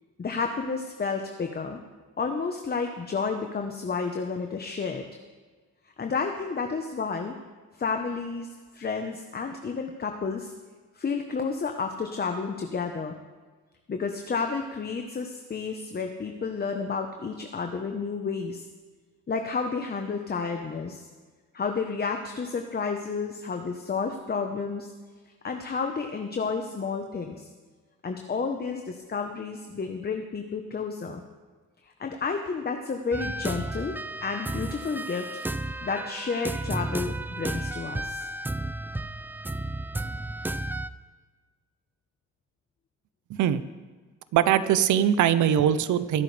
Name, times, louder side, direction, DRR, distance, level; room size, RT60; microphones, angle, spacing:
voice 1, 0.2-1.8 2.2-5.1 6.0-7.4 7.8-10.5 10.9-13.2 13.9-18.6 19.3-21.1 21.5-24.9 25.4-27.5 28.0-31.2 31.8-35.4 35.8-38.3, left 5 dB, 30° left, 4 dB, 1.1 m, -31 dB
sound 1, 33.1-40.9, right 2 dB, 5° right, 0.4 m, -33 dB
voice 2, 43.3-43.6 44.3-46.2, right 10 dB, 75° right, 13 dB, 0.8 m, -22 dB
24.5 x 8.5 x 3.4 m, 1.4 s
cardioid pair, 90°, 30 cm